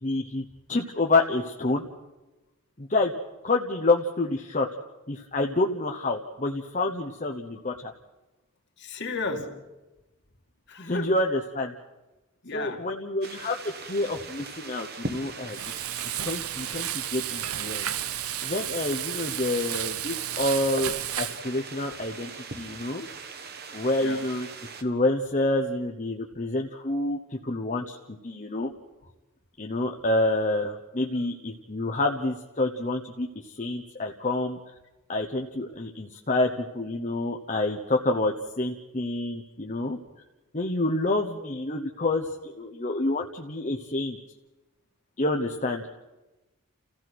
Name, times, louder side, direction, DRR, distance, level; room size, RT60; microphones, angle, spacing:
voice 1, 0.0-1.8 2.8-3.1 3.4-4.7 5.1-7.9 10.8-11.7 12.5-13.6 13.8-15.6 16.2-17.9 18.4-23.1 23.7-24.5 24.8-28.7 29.6-33.3 33.5-34.6 35.1-40.0 40.5-44.2 45.2-45.8, left 2 dB, 35° left, 1.0 m, -28 dB
voice 2, 8.8-9.6 10.7-11.2 12.4-12.9 24.0-24.3, left 3 dB, 50° left, 2.2 m, -34 dB
sound 1, 13.2-24.8, right 4 dB, 45° right, 1.4 m, -41 dB
Frying (food), 15.5-21.4, right 12 dB, 85° right, 0.8 m, -32 dB
29.5 x 15.5 x 6.1 m
head